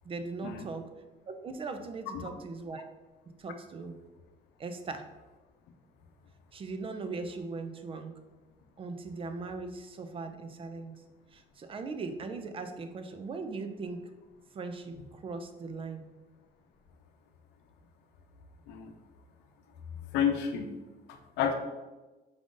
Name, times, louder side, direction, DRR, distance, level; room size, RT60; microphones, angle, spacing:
voice 1, 0.0-0.9 1.3-2.8 3.4-4.0 4.6-5.0 6.5-8.1 8.8-10.9 11.3-14.1 14.5-16.1, right 3 dB, 30° right, 8 dB, 0.5 m, -39 dB
voice 2, 20.1-20.7 21.1-21.5, left 8 dB, 90° left, 5 dB, 0.6 m, -30 dB
5.0 x 2.5 x 3.7 m, 1.2 s
cardioid pair, 110°, 17 cm